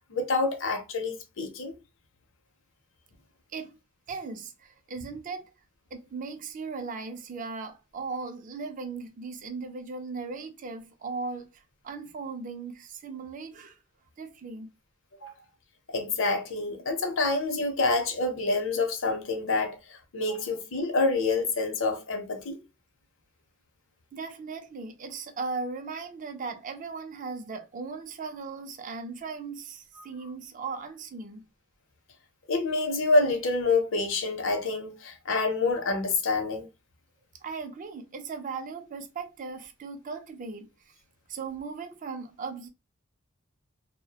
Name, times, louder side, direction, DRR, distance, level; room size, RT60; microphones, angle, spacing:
voice 1, 0.1-1.7 15.2-15.3 15.9-22.6 30.0-30.1 32.5-36.7, left 3 dB, 70° left, 0.6 m, -27 dB
voice 2, 4.1-5.5 5.9-13.8 14.2-14.7 15.3-15.5 24.1-31.5 37.4-41.0 41.3-42.7, right 4 dB, 40° right, 0.4 m, -38 dB
2.3 x 2.1 x 2.7 m
head